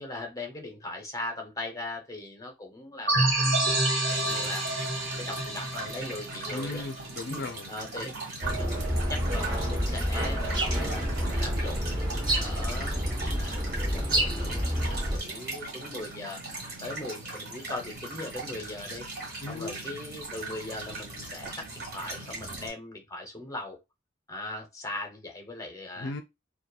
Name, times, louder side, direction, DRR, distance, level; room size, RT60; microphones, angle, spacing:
voice 1, 0.0-3.8 4.1-4.7 5.1-6.9 7.3-7.4 7.7-8.1 8.5-16.4 16.8-19.1 19.5-23.8 24.3-26.1, left 2 dB, 20° left, 0.6 m, -40 dB
sound 1, 3.1-7.5, right 1 dB, 85° right, 1.1 m, -28 dB
sound 2, 4.1-22.7, right 2 dB, 55° right, 1.6 m, -39 dB
voice 2, 6.5-7.7 19.4-19.8 26.0-26.2, left 2 dB, 65° left, 0.3 m, -36 dB
sound 3, 8.4-15.2, equal, 25° right, 0.6 m, -28 dB
2.8 x 2.2 x 2.3 m
head